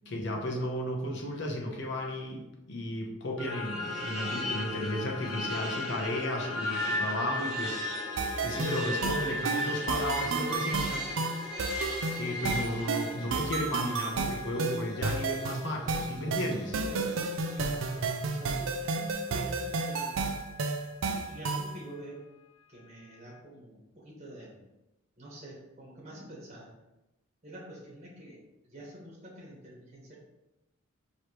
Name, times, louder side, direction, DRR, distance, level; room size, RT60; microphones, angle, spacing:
voice 1, 0.1-2.4 2.7-8.2 8.4-11.2 12.2-16.8, left 1 dB, 55° left, 0 dB, 0.8 m, -34 dB
sound 1, 3.4-17.7, equal, 5° right, 0.8 m, -37 dB
sound 2, 3.5-22.2 22.6-23.4, left 6 dB, 80° left, 0.3 m, -45 dB
sound 3, 8.2-21.8, right 4 dB, 70° right, 0.4 m, -32 dB
voice 2, 16.8-20.3 21.0-22.3 22.7-24.6 25.2-26.7 27.4-30.2, right 1 dB, 30° right, -5 dB, 1.3 m, -47 dB
4.7 x 3.1 x 3.0 m, 0.94 s
head